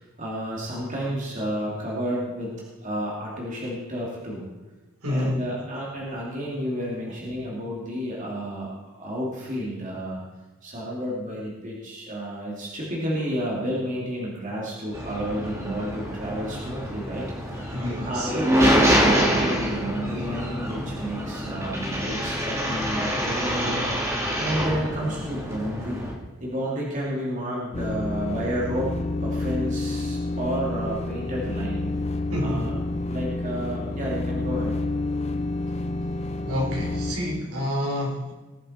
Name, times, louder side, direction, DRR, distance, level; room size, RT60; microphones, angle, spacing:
voice 1, 0.0-2.5 2.8-4.5 5.1-10.2 10.6-23.9 24.4-26.0 26.4-28.9 29.2-31.8 32.4-32.8 33.1-34.8, equal, 35° right, -4 dB, 2.6 m, -31 dB
voice 2, 5.0-5.4 7.1-7.2 17.6-18.3 32.3-32.7 36.5-38.3, left 1 dB, 85° right, -2 dB, 3.8 m, -28 dB
sound 1, 14.9-26.1, equal, 15° right, 1.8 m, -26 dB
sound 2, 27.7-37.2, left 2 dB, 30° left, 0.6 m, -29 dB
19.5 x 7.7 x 4.3 m, 1.2 s
head